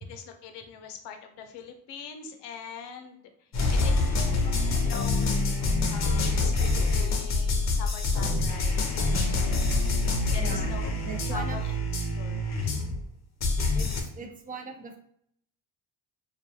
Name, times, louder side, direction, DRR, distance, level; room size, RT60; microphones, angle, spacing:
voice 1, 0.1-3.2 3.7-3.8 4.7-5.6 5.9-9.6 10.3-11.7 12.2-13.0, left 7 dB, 90° left, 6 dB, 0.5 m, -43 dB
sound 1, 3.5-13.1 13.4-14.0, left 3 dB, 45° left, 0.6 m, -26 dB
voice 2, 10.4-10.8 11.1-11.6 13.7-13.9 14.1-15.0, right 4 dB, 20° right, 4 dB, 0.4 m, -39 dB
2.2 x 2.2 x 2.7 m, 0.67 s
cardioid pair, 90°, 40 cm